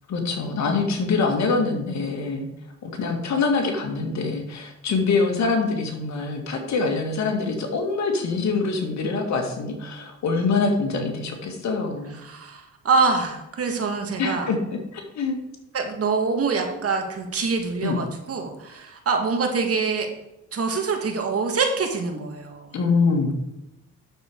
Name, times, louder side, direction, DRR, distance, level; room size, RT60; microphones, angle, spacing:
voice 1, 0.1-2.5 2.8-12.2 14.2-14.6 14.9-15.4 17.8-18.0 22.7-23.3, left 4 dB, 65° left, 3 dB, 2.4 m, -24 dB
voice 2, 12.2-14.5 15.7-20.1 20.5-22.7, right 4 dB, 50° right, 4 dB, 2.2 m, -25 dB
9.2 x 7.2 x 4.8 m, 0.88 s
cardioid pair, 90°, 30 cm